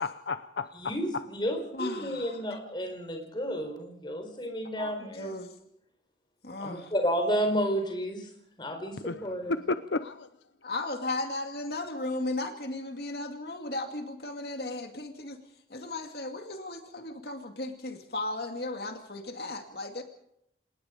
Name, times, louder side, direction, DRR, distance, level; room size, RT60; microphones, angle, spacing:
voice 1, 0.0-0.9 9.0-10.3, left 3 dB, 80° left, 12 dB, 0.7 m, -32 dB
voice 2, 0.7-5.3 6.6-8.3 8.6-9.6, equal, 25° left, 4 dB, 4.5 m, -31 dB
voice 3, 1.7-2.4 4.8-5.5 6.4-6.9 10.6-15.4 15.7-20.0, left 2 dB, 60° left, 5 dB, 2.4 m, -36 dB
27.5 x 19.0 x 5.2 m, 0.76 s
head